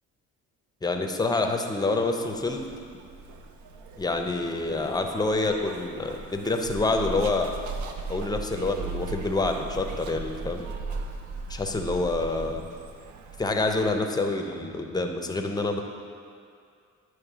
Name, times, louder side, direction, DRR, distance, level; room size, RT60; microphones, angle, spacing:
voice 1, 0.8-2.6 4.0-7.5 8.1-10.6 11.5-12.6 13.4-15.8, left 2 dB, 15° left, 4 dB, 0.6 m, -27 dB
Zipper (clothing), 2.2-13.9, right 3 dB, 70° right, 0.6 m, -38 dB
9.0 x 3.2 x 4.9 m, 2.3 s
cardioid pair, 90°, 30 cm